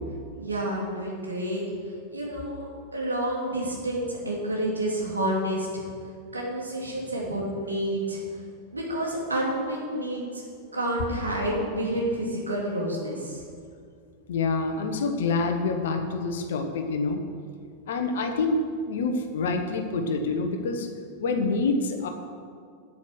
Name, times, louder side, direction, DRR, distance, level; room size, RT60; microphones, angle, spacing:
voice 1, 0.4-1.6 2.1-5.8 6.3-8.2 8.7-13.4, right 1 dB, 80° right, -3 dB, 2.8 m, -29 dB
voice 2, 14.3-17.2 17.9-18.6 18.9-20.9 21.2-22.1, left 3 dB, 60° left, 5 dB, 1.2 m, -26 dB
8.8 x 8.6 x 6.4 m, 2.2 s
figure-of-eight pair, 90°, 0 cm